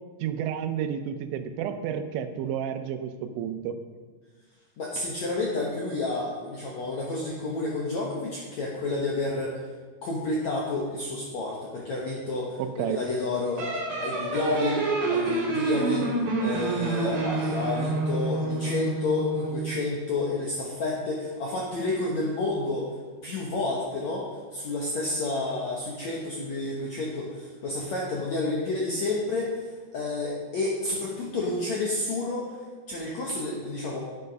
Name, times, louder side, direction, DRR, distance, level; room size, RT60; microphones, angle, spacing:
voice 1, 0.2-3.8 12.6-13.0, right 9 dB, 90° right, 9 dB, 3.1 m, -31 dB
voice 2, 4.8-9.6 10.0-13.7 14.0-16.1 16.4-22.9 23.2-32.5 32.9-34.0, left 2 dB, 75° left, -3 dB, 1.6 m, -30 dB
sound 1, 13.6-19.6, right 3 dB, 45° right, 2.6 m, -28 dB
10.5 x 7.8 x 5.3 m, 1.4 s
omnidirectional pair, 5.1 m